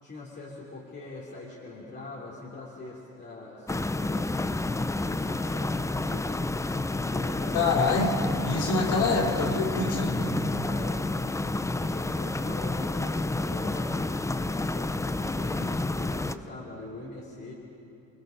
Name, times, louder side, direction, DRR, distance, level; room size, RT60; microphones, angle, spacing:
voice 1, 0.0-4.6 5.0-6.5 7.0-7.6 8.4-8.8 9.7-9.8 10.1-11.4 11.7-14.0 14.4-17.5, left 2 dB, 35° left, -5 dB, 3.4 m, -42 dB
sound 1, 3.7-16.4, left 2 dB, 10° left, 0.5 m, -29 dB
voice 2, 7.5-10.3, left 3 dB, 70° left, 0 dB, 3.4 m, -26 dB
28.5 x 20.0 x 5.3 m, 2.8 s
cardioid pair, 105°, 32 cm